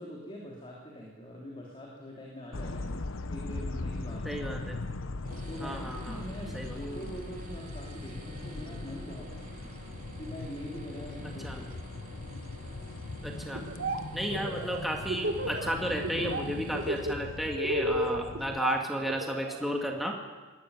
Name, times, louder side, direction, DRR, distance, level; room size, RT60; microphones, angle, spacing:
voice 1, 0.0-2.9 3.3-4.4 5.5-9.4 10.2-11.7, equal, 25° left, -3 dB, 3.3 m, -43 dB
sound 1, 2.5-18.6, left 2 dB, 85° left, 1.0 m, -40 dB
voice 2, 4.3-4.8 5.6-6.2 6.5-6.8 11.4-11.6 13.2-13.7 14.1-20.1, equal, ahead, 1 dB, 2.0 m, -33 dB
sound 2, 5.2-17.1, right 2 dB, 40° right, 2.7 m, -50 dB
Laughter, 13.5-14.0 14.3-15.7 16.0-16.4 16.7-19.6, right 1 dB, 60° right, 2.0 m, -32 dB
19.5 x 14.0 x 9.7 m, 1.3 s
head